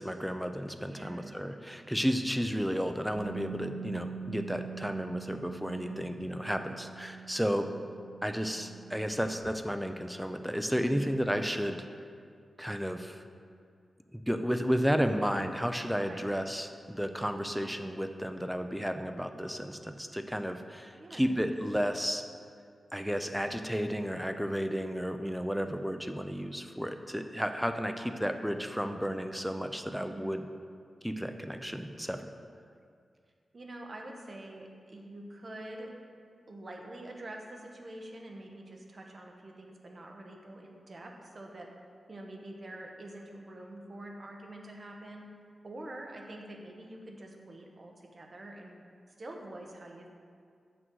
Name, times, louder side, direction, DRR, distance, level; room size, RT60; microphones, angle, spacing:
voice 1, 0.0-7.7 8.2-11.8 12.6-13.2 14.1-22.2 22.9-30.5 31.0-32.3, equal, ahead, 7 dB, 0.5 m, -32 dB
voice 2, 0.8-1.4 5.7-6.0 10.9-11.1 16.1-16.3 21.0-21.3 30.1-30.5 33.5-35.9 36.5-41.7 42.1-45.2 45.6-48.8 49.1-50.1, right 1 dB, 40° right, 1 dB, 1.0 m, -46 dB
Bass guitar, 3.2-9.4, right 7 dB, 60° right, 0.8 m, -44 dB
7.7 x 6.2 x 4.6 m, 2.2 s
wide cardioid pair, 115°, 0 cm